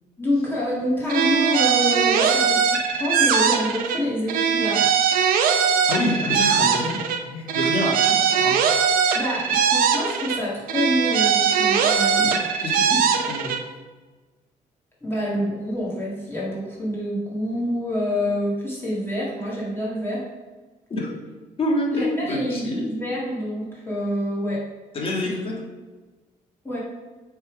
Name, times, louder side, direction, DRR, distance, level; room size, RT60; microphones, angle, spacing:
voice 1, 0.2-4.9 9.1-12.3 15.0-20.2 21.9-24.6 26.6-26.8, left 1 dB, 15° left, -6 dB, 1.8 m, -27 dB
sound 1, 1.1-4.0 4.3-7.2 7.5-10.4 10.7-13.6, right 7 dB, 85° right, 0.7 m, -20 dB
voice 2, 5.9-8.6 12.1-12.3 12.6-13.5 20.9-21.1 21.6-22.9 24.9-25.6, left 1 dB, 40° left, -1 dB, 1.7 m, -27 dB
6.9 x 3.7 x 5.0 m, 1.3 s
cardioid pair, 105°, 14 cm